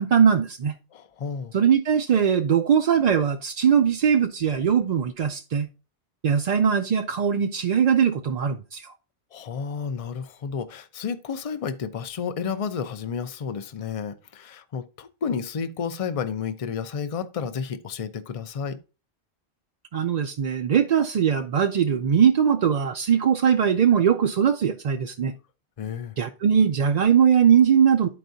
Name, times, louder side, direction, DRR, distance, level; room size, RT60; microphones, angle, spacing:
voice 1, 0.0-0.7 1.5-5.7 6.2-8.9 19.9-25.3 26.2-28.1, right 7 dB, 55° right, 0.5 m, -20 dB
voice 2, 0.9-1.5 9.3-18.8 25.8-26.1, left 6 dB, 40° left, 0.5 m, -31 dB
12.0 x 4.6 x 2.6 m
omnidirectional pair, 1.1 m